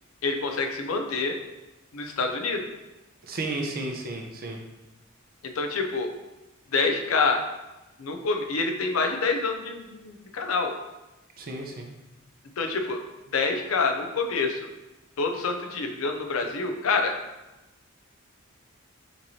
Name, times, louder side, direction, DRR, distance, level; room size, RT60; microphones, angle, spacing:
voice 1, 0.2-1.4 1.9-2.7 5.4-6.1 6.7-7.4 8.0-10.7 12.6-13.0 13.3-14.7 15.2-17.1, left 4 dB, 90° left, 4 dB, 0.6 m, -27 dB
voice 2, 3.3-4.6 11.4-11.9, right 2 dB, 45° right, 1 dB, 0.6 m, -33 dB
5.1 x 3.1 x 2.8 m, 1.0 s
head